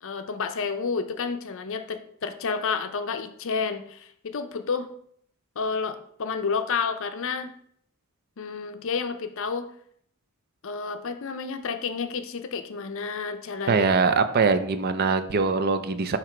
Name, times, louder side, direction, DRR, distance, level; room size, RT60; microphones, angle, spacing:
voice 1, 0.0-4.9 5.6-7.5 8.4-9.7 10.6-13.8, left 5 dB, 60° left, 8 dB, 0.5 m, -30 dB
voice 2, 13.7-16.2, right 4 dB, 45° right, 10 dB, 0.5 m, -22 dB
7.5 x 3.0 x 4.9 m, 0.66 s
head